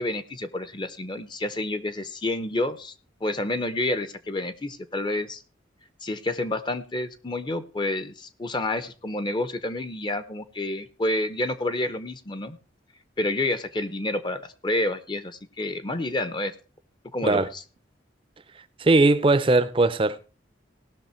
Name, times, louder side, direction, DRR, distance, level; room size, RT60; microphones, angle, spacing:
voice 1, 0.0-2.9 3.2-5.4 6.0-12.6 13.2-16.5 17.1-17.6, left 2 dB, 25° left, 0.7 m, -29 dB
voice 2, 18.8-20.2, right 2 dB, 30° right, 0.6 m, -19 dB
17.5 x 6.3 x 4.4 m
head